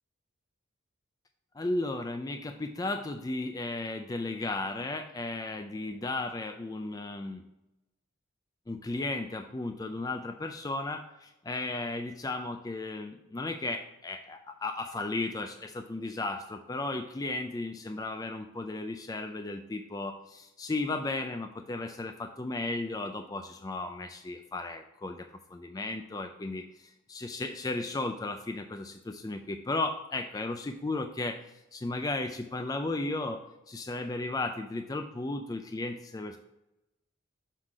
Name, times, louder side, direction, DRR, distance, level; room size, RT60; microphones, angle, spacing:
voice 1, 1.5-7.4 8.7-36.4, left 2 dB, 20° left, 6 dB, 0.3 m, -35 dB
6.4 x 3.8 x 4.7 m, 0.94 s
head